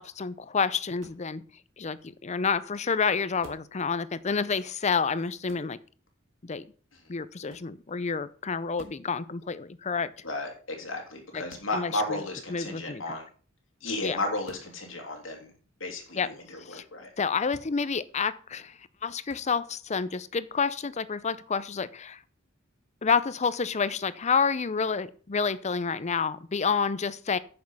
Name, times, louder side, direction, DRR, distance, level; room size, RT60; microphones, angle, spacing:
voice 1, 0.0-1.4 1.8-5.8 6.4-6.7 7.1-10.1 11.3-11.4 11.7-12.2 12.5-13.0 14.0-14.2 16.2-16.3 16.7-16.8 17.2-22.2 23.0-27.4, left 5 dB, 35° left, 16 dB, 0.6 m, -29 dB
sound 1, 1.0-1.3 3.4-3.7 5.5-5.7 7.5-7.7 8.7-9.1 11.5-11.7 14.4-14.7 17.5-17.7 19.3-19.5, right 1 dB, 80° right, 2.5 m, -49 dB
voice 2, 10.2-13.3 13.8-15.5 15.8-17.1, left 2 dB, 90° left, 1 dB, 3.1 m, -34 dB
9.6 x 6.5 x 5.5 m, 0.42 s
head